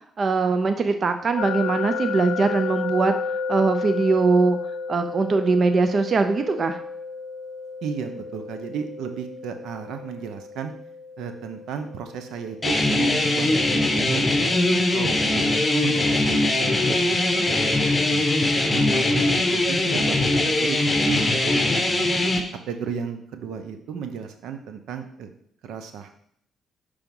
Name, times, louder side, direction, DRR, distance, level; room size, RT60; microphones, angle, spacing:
voice 1, 0.2-3.1 3.5-4.6 4.9-6.8, right 4 dB, 45° right, 7 dB, 0.4 m, -21 dB
sound 1, 1.4-14.3, left 5 dB, 80° left, 0.5 m, -33 dB
voice 2, 7.8-10.7 11.2-17.7 18.0-20.8 21.0-22.1 22.7-25.3 25.6-26.1, right 7 dB, 80° right, 7 dB, 0.7 m, -34 dB
sound 2, 12.6-22.4, left 2 dB, 20° left, 0.9 m, -21 dB
5.8 x 3.4 x 5.4 m, 0.68 s
cardioid pair, 90°, 0 cm